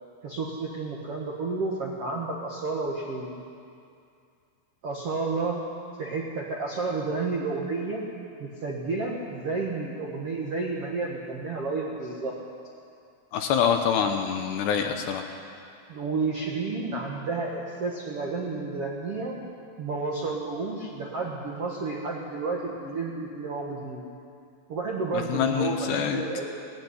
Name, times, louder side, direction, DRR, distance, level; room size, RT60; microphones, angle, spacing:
voice 1, 0.2-3.3 4.8-5.6 6.0-8.0 8.4-12.3 15.9-19.4 19.8-24.0 24.7-26.5, right 3 dB, 60° right, -2 dB, 1.5 m, -31 dB
voice 2, 13.3-15.2 25.1-26.2, left 7 dB, 75° left, 4 dB, 2.8 m, -25 dB
19.0 x 15.0 x 9.7 m, 2.4 s
omnidirectional pair, 5.5 m